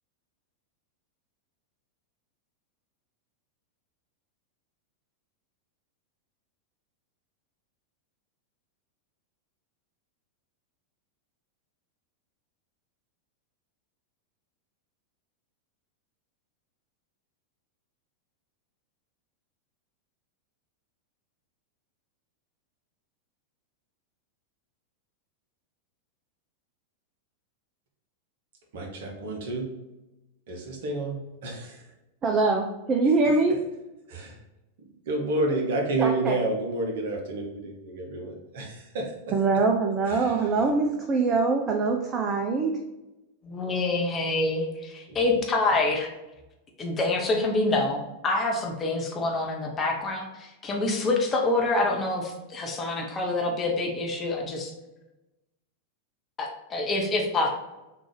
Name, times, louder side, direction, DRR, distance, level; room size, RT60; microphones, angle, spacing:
voice 1, 28.7-29.7 30.5-31.8 34.1-34.4 35.1-39.1 40.1-40.4 45.1-45.2, right 2 dB, 55° right, 1 dB, 0.8 m, -30 dB
voice 2, 32.2-33.6 36.0-36.4 39.3-42.8, right 3 dB, 25° right, 2 dB, 0.4 m, -23 dB
voice 3, 43.4-46.1 46.8-54.7 56.4-57.5, left 2 dB, 25° left, 0 dB, 0.7 m, -26 dB
3.7 x 2.4 x 3.1 m, 0.98 s
figure-of-eight pair, 90°, 0 cm